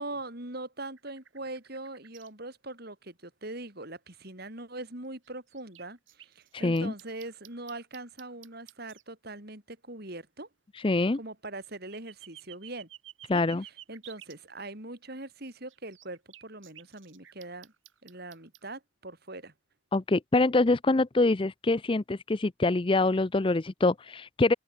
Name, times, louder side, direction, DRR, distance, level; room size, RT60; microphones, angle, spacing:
voice 1, 0.0-10.5 11.1-12.9 13.3-17.7 18.0-19.5, right 2 dB, 50° right, 4.4 m, -42 dB
sound 1, 1.0-2.3 4.5-4.6 5.2-9.0 11.4-14.3 15.3-18.7, right 12 dB, 75° right, 2.8 m, -52 dB
voice 2, 6.5-6.9 10.8-11.2 13.3-13.6 19.9-24.5, left 2 dB, 25° left, 0.5 m, -25 dB
open air
head